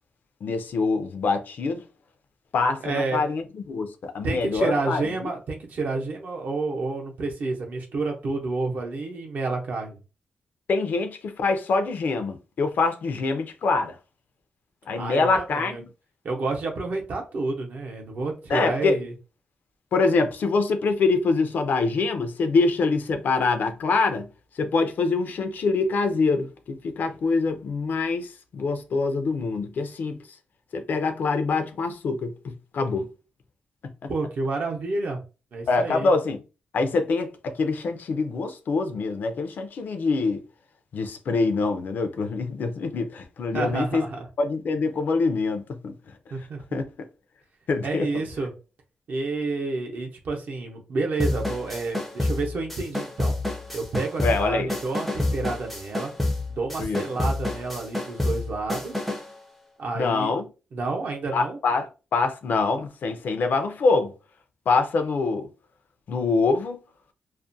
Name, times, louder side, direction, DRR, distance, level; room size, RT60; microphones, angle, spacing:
voice 1, 0.4-1.8 2.5-5.3 10.7-14.0 14.9-15.9 18.5-19.0 19.9-24.3 24.6-30.2 30.7-33.1 34.0-34.1 35.7-36.4 36.7-40.4 40.9-44.0 44.4-45.9 46.7-47.1 47.7-48.1 54.2-54.7 56.8-57.0 60.0-60.5 61.3-64.1 64.7-65.5 66.1-66.8, left 4 dB, 60° left, 0.4 m, -25 dB
voice 2, 2.8-3.2 4.2-10.0 14.9-15.8 16.2-19.1 34.1-35.2 35.5-36.1 43.5-44.3 46.3-46.8 47.8-48.5 49.1-53.3 53.7-56.1 56.5-59.0 59.8-60.3 60.7-61.6, right 3 dB, 55° right, 0.7 m, -29 dB
sound 1, 51.2-59.3, left 2 dB, ahead, 0.5 m, -29 dB
2.4 x 2.1 x 2.6 m
wide cardioid pair, 130°, 4 cm